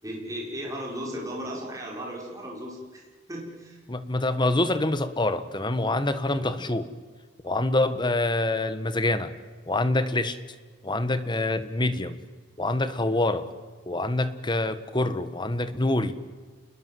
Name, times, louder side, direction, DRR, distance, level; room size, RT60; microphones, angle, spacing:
voice 1, 0.0-3.8 6.3-6.5, equal, 15° right, -3 dB, 5.9 m, -36 dB
voice 2, 3.9-6.9 7.4-9.3 9.7-10.4 10.8-12.2 12.6-13.5 13.9-16.1, left 2 dB, 25° left, 12 dB, 1.4 m, -26 dB
29.0 x 21.5 x 7.8 m, 1.4 s
head